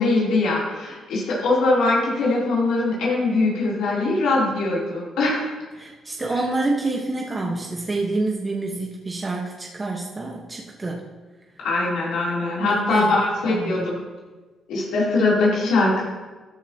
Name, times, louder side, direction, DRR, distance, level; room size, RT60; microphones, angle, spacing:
voice 1, 0.0-5.6 11.6-14.0 14.7-16.0, left 2 dB, 85° left, -6 dB, 3.4 m, -21 dB
voice 2, 5.8-11.0 12.7-13.2 13.4-13.9, right 2 dB, 25° right, -1 dB, 1.3 m, -27 dB
13.5 x 12.5 x 3.0 m, 1.3 s
cardioid pair, 90°, 0 cm